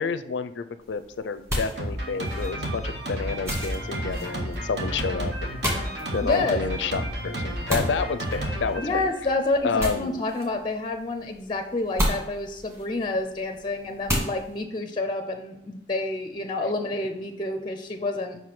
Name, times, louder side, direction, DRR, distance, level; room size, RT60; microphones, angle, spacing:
voice 1, 0.0-5.6 6.1-9.1 9.6-10.2, left 5 dB, 75° left, 12 dB, 0.5 m, -29 dB
sound 1, 0.8-14.6, equal, 15° right, 1.8 m, -34 dB
Drum kit, 1.8-9.6, right 1 dB, 65° right, 1.4 m, -31 dB
voice 2, 6.2-6.6 8.8-18.4, left 2 dB, 25° left, 6 dB, 0.5 m, -28 dB
5.5 x 4.7 x 5.9 m, 0.84 s
head